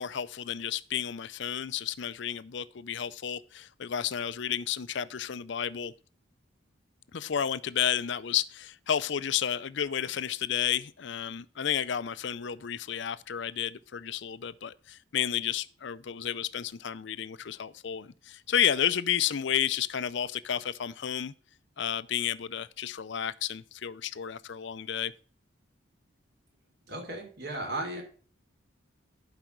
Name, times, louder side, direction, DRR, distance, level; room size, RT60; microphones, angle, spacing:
voice 1, 0.0-5.9 7.1-21.3 21.8-25.1, left 9 dB, 60° left, 0.5 m, -31 dB
voice 2, 26.9-28.0, right 1 dB, 50° right, 3.0 m, -35 dB
11.5 x 5.0 x 4.5 m
head